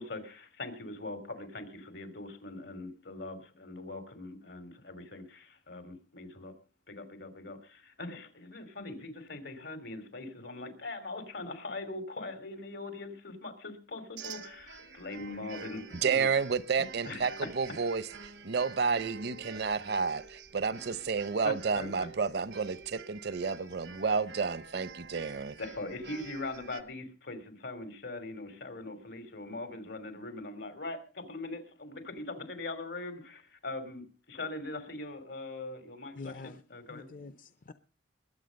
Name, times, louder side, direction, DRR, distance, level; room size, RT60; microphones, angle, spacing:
voice 1, 0.0-6.5 6.9-16.3 17.0-17.5 21.4-22.1 25.6-37.1, left 2 dB, 85° left, 3.1 m, -41 dB
sound 1, 14.2-26.8, right 5 dB, 85° right, 1.2 m, -48 dB
voice 2, 16.0-25.5, right 5 dB, 65° right, 0.8 m, -31 dB
voice 3, 36.2-36.6 36.9-37.7, left 4 dB, 50° left, 0.6 m, -45 dB
21.5 x 8.3 x 5.3 m
head